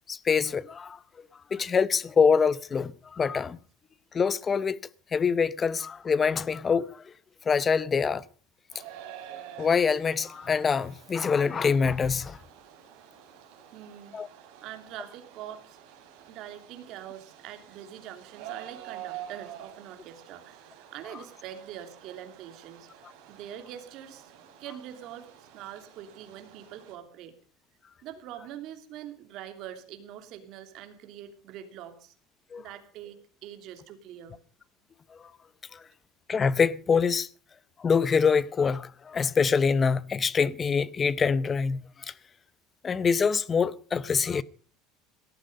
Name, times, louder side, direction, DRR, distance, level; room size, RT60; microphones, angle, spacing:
voice 1, 0.1-1.0 1.5-3.6 4.1-4.8 5.1-6.9 7.5-8.2 9.6-12.4 14.1-14.3 32.5-32.6 36.3-37.3 37.8-41.8 42.8-44.4, left 5 dB, 20° left, 0.7 m, -25 dB
sound 1, 8.7-27.0, right 10 dB, 65° right, 4.9 m, -48 dB
voice 2, 13.7-14.2 14.6-15.8 16.3-24.3 24.6-27.3 28.0-32.1 32.6-34.4, right 11 dB, 50° right, 2.9 m, -44 dB
18.5 x 13.0 x 5.3 m
cardioid pair, 160°, 0 cm